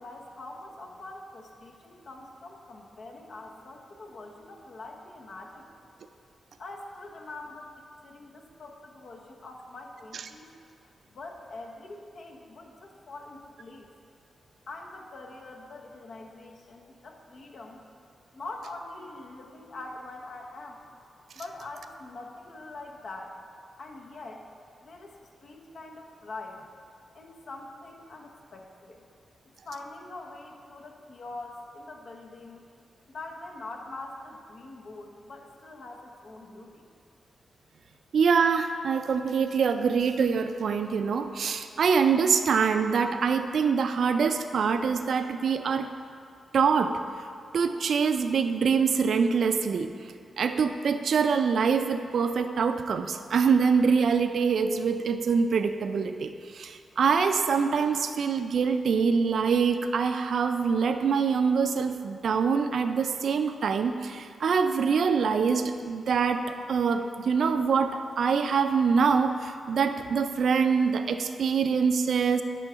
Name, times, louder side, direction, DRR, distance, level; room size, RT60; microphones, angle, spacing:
voice 1, 0.0-5.7 6.6-10.5 11.1-13.9 14.7-17.8 18.3-20.8 21.3-23.4 23.8-24.5 24.8-26.6 27.1-29.0 29.6-32.6 33.1-36.8, left 2 dB, 65° left, 1 dB, 1.0 m, -43 dB
voice 2, 38.1-45.9 46.5-46.9 47.5-49.9 50.4-72.4, right 5 dB, 70° right, 8 dB, 0.4 m, -25 dB
10.5 x 3.8 x 5.6 m, 2.4 s
cardioid pair, 95°, 0 cm